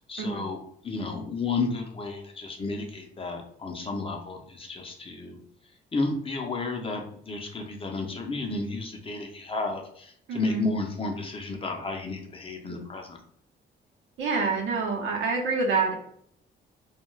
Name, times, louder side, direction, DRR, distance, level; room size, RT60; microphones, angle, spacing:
voice 1, 0.1-0.6 0.8-5.4 5.9-13.2, left 3 dB, 30° left, 2 dB, 0.5 m, -32 dB
voice 2, 10.3-10.6 14.2-15.9, right 4 dB, 75° right, -1 dB, 0.8 m, -27 dB
2.3 x 2.2 x 3.1 m, 0.64 s
cardioid pair, 90°, 20 cm